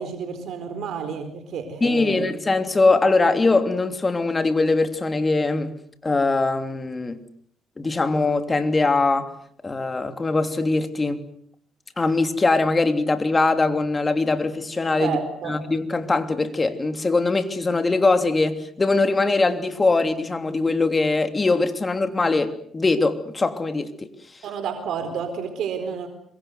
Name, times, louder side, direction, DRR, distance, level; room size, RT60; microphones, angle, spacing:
voice 1, 0.0-2.3 15.0-15.6 24.4-26.1, right 6 dB, 75° right, 7 dB, 4.3 m, -30 dB
voice 2, 1.8-5.7 6.0-7.2 7.8-9.3 9.6-11.2 12.0-15.2 15.4-24.1, left 3 dB, 25° left, 8 dB, 3.1 m, -21 dB
26.5 x 23.0 x 8.0 m, 0.65 s
cardioid pair, 90°, 0 cm